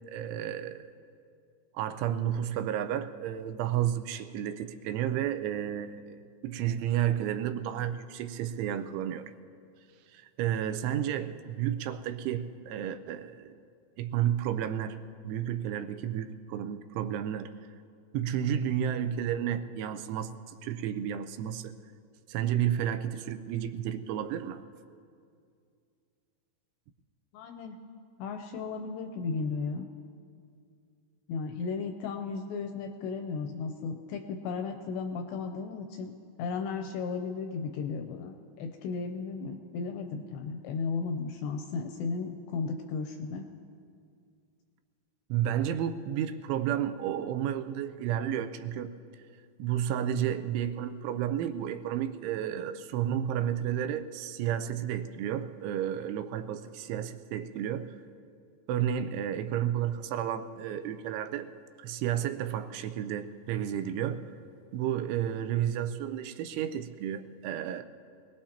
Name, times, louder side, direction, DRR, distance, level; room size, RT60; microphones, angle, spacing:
voice 1, 0.1-0.8 1.7-9.3 10.1-13.6 14.0-15.0 15.2-17.5 18.1-21.7 22.3-24.6 45.3-48.9 49.6-57.9 58.7-61.5 61.8-64.2 64.7-67.8, right 10 dB, 85° right, 9 dB, 3.1 m, -32 dB
voice 2, 27.3-27.8 28.2-29.9 31.3-43.5, left 5 dB, 80° left, 5 dB, 2.5 m, -35 dB
24.5 x 19.0 x 2.9 m, 2.3 s
omnidirectional pair, 5.5 m